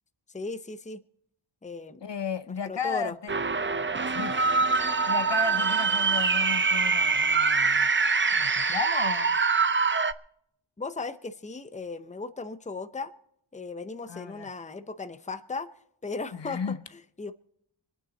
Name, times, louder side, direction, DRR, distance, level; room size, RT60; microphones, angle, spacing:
voice 1, 0.3-1.0 1.6-2.0 2.5-3.2 10.8-13.1 13.5-15.7 16.0-17.3, left 3 dB, 15° left, 0.7 m, -37 dB
voice 2, 2.0-3.3 4.1-4.5 5.1-7.9 8.3-9.4 14.1-14.5 16.3-16.8, left 6 dB, 60° left, 0.7 m, -34 dB
sound 1, 3.3-10.1, right 4 dB, 25° right, 0.5 m, -24 dB
24.5 x 9.2 x 3.9 m
wide cardioid pair, 75°, 48 cm